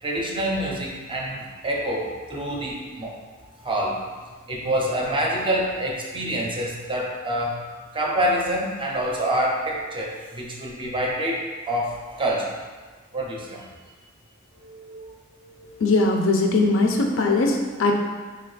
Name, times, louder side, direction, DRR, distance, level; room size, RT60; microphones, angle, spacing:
voice 1, 0.0-3.2 3.6-4.0 4.5-7.6 7.9-12.5 13.1-13.7 14.6-15.0 15.4-15.6, right 1 dB, 25° right, -1 dB, 0.5 m, -27 dB
voice 2, 15.8-17.9, left 3 dB, 65° left, 2 dB, 0.5 m, -20 dB
3.3 x 2.9 x 3.8 m, 1.4 s
head